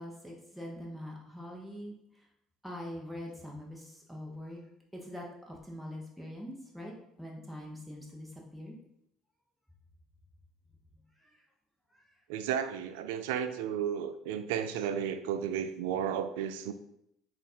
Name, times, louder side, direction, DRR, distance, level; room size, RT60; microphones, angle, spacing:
voice 1, 0.0-1.9 2.6-4.6 4.9-6.9 7.2-8.8 11.2-11.3, left 1 dB, ahead, -2 dB, 0.9 m, -43 dB
voice 2, 12.3-16.7, right 8 dB, 80° right, 10 dB, 0.3 m, -33 dB
3.9 x 2.5 x 4.3 m, 0.76 s
supercardioid pair, 80°, 0 cm